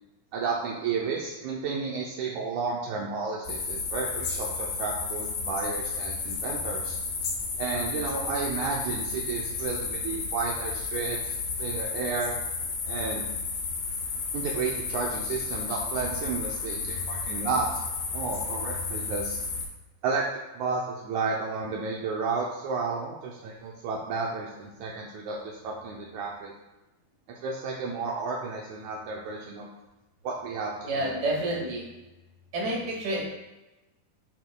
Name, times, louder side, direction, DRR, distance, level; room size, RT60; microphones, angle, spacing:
voice 1, 0.3-7.0 7.6-12.4 12.8-13.2 14.3-17.8 18.1-19.4 20.0-26.5 27.3-29.7 30.2-31.1, right 4 dB, 85° right, -2 dB, 1.7 m, -32 dB
sound 1, 3.4-19.7, left 4 dB, 80° left, 2.7 m, -32 dB
voice 2, 30.8-31.9 32.5-33.2, right 1 dB, 30° right, -4 dB, 1.4 m, -29 dB
8.1 x 6.4 x 2.3 m, 1.0 s
omnidirectional pair, 4.1 m